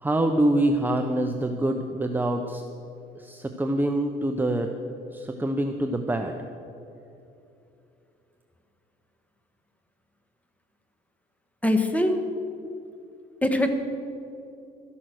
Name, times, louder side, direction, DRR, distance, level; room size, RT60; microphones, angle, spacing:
voice 1, 0.0-2.6 3.2-4.7 5.1-6.3, right 1 dB, 10° right, 5 dB, 0.7 m, -25 dB
voice 2, 11.6-12.2 13.4-13.7, left 1 dB, 10° left, 6 dB, 1.5 m, -22 dB
13.5 x 11.0 x 6.3 m, 2.8 s
cardioid pair, 110°, 17 cm